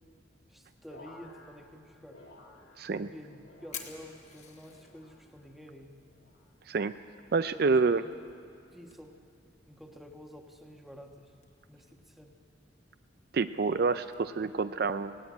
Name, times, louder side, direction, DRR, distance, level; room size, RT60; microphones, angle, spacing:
voice 1, 0.5-2.2 2.9-6.0 7.5-8.1 8.7-9.2 9.7-11.3 11.7-12.4, equal, ahead, 3 dB, 1.2 m, -49 dB
sound 1, 0.9-3.1 3.4-4.2 4.7-5.4 6.1-6.5 7.4-7.8 8.7-9.0, left 2 dB, 85° left, 4.0 m, -56 dB
Fire, 2.7-14.2, left 7 dB, 35° left, 1.7 m, -54 dB
voice 2, 2.8-3.1 6.7-6.9 7.3-8.0 13.3-15.2, right 4 dB, 50° right, 12 dB, 0.4 m, -27 dB
17.0 x 17.0 x 9.7 m, 2.5 s
head